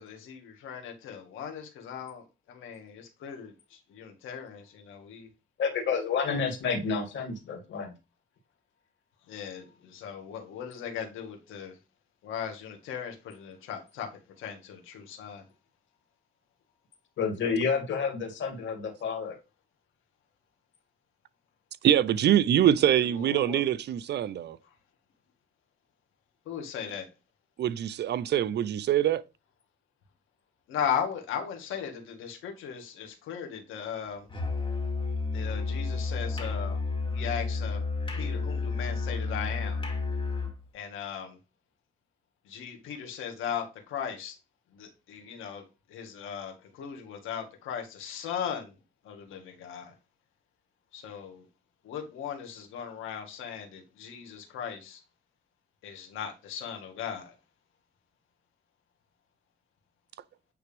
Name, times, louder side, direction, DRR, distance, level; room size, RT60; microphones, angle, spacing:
voice 1, 0.0-5.3 9.3-11.8 12.2-14.1 14.4-15.4 23.1-23.6 26.5-27.1 30.7-34.3 35.3-36.8 37.1-37.8 38.1-39.8 40.7-41.4 42.5-44.4 44.7-45.6 45.9-48.7 49.0-49.9 50.9-51.4 51.8-55.0 55.8-57.3, left 8 dB, 85° left, 1.8 m, -37 dB
voice 2, 5.6-7.9 17.2-19.4, left 5 dB, 70° left, 2.6 m, -29 dB
voice 3, 21.8-24.6 27.6-29.2, right 11 dB, 60° right, 0.5 m, -24 dB
Musical instrument, 34.3-40.6, left 4 dB, 25° left, 2.2 m, -31 dB
9.3 x 3.3 x 3.4 m
cardioid pair, 90°, 20 cm